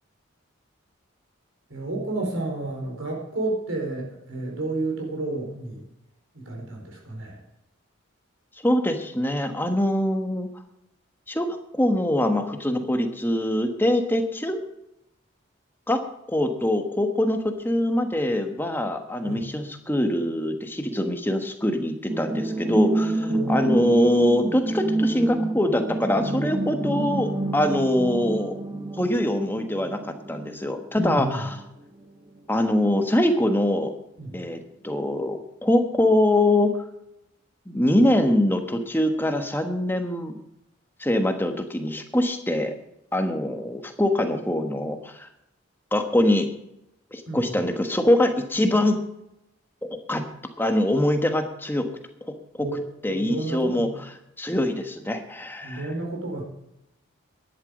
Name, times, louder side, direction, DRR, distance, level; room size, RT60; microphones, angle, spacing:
voice 1, 1.7-5.8 6.3-7.4 19.2-19.5 23.3-23.8 31.0-31.4 34.2-34.4 47.3-47.6 52.6-53.9 55.6-56.4, right 2 dB, 70° right, 0 dB, 4.7 m, -31 dB
voice 2, 8.6-10.5 11.3-14.6 15.9-16.0 16.3-28.5 29.0-30.0 30.3-31.6 32.5-33.9 34.3-36.7 37.7-40.4 41.0-42.7 43.1-45.3 45.9-46.5 47.1-49.0 49.8-50.2 50.6-51.9 52.6-52.7 53.0-53.9 54.4-55.9, left 1 dB, 10° left, 5 dB, 1.2 m, -23 dB
sound 1, 22.1-31.7 32.0-32.1, right 2 dB, 15° right, 1.0 m, -28 dB
12.5 x 11.0 x 5.3 m, 0.84 s
head